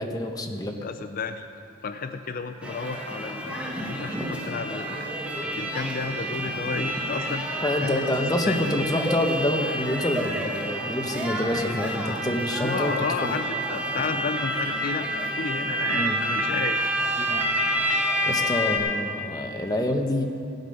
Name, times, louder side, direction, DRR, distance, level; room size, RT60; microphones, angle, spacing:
voice 1, 0.0-0.7 7.6-13.3 15.9-16.2 17.2-17.4 18.3-20.3, left 1 dB, 20° left, 3 dB, 1.0 m, -27 dB
voice 2, 0.8-1.5 1.8-5.1 5.5-7.4 7.8-8.1 8.4-8.8 12.6-16.8, left 5 dB, 45° left, 9 dB, 0.4 m, -32 dB
sound 1, 2.6-18.8, equal, 5° right, 1.4 m, -28 dB
16.5 x 8.0 x 5.4 m, 2.5 s
head